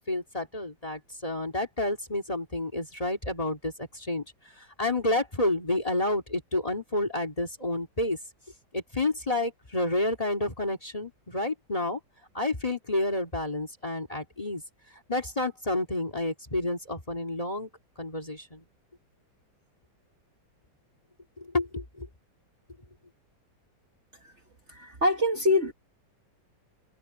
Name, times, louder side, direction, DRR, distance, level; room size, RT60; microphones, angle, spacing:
voice 1, 0.1-4.2 4.6-8.2 8.7-12.0 12.3-14.6 15.1-17.7 18.0-18.6 21.4-22.1, left 2 dB, 20° left, 2.1 m, -30 dB
voice 2, 24.7-25.7, left 1 dB, 40° right, 1.6 m, -25 dB
omnidirectional pair, 2.0 m